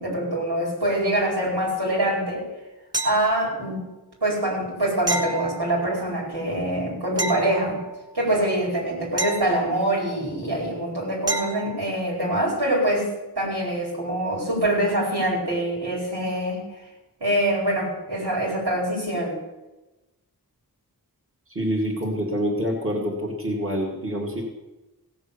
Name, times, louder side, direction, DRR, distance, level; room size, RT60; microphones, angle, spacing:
voice 1, 0.0-2.4 3.0-3.8 4.2-7.8 8.1-13.1 13.4-16.6 17.2-19.4, right 1 dB, 85° right, -3 dB, 4.7 m, -24 dB
sound 1, 2.9-3.7 5.1-6.1 7.2-8.2 9.2-10.2 11.3-11.9 14.6-14.7, right 2 dB, 10° right, 1.4 m, -30 dB
voice 2, 21.5-24.4, equal, 35° right, -3 dB, 2.6 m, -26 dB
16.5 x 7.1 x 6.9 m, 1.1 s
wide cardioid pair, 50°, 38 cm